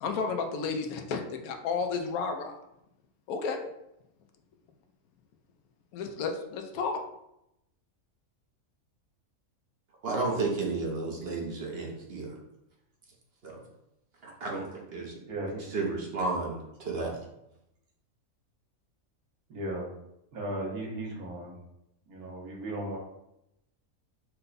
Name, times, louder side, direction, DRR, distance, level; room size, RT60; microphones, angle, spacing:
voice 1, 0.0-2.6 3.3-3.6 5.9-7.0, left 5 dB, 85° left, 5 dB, 1.1 m, -32 dB
voice 2, 10.0-12.4 13.4-13.6 14.2-15.2 15.6-17.2, right 3 dB, 50° right, -1 dB, 0.9 m, -32 dB
voice 3, 15.3-15.6 19.5-19.9 20.3-21.5 22.1-23.0, right 1 dB, 80° right, -1 dB, 1.6 m, -36 dB
5.6 x 2.2 x 3.9 m, 0.83 s
omnidirectional pair, 1.5 m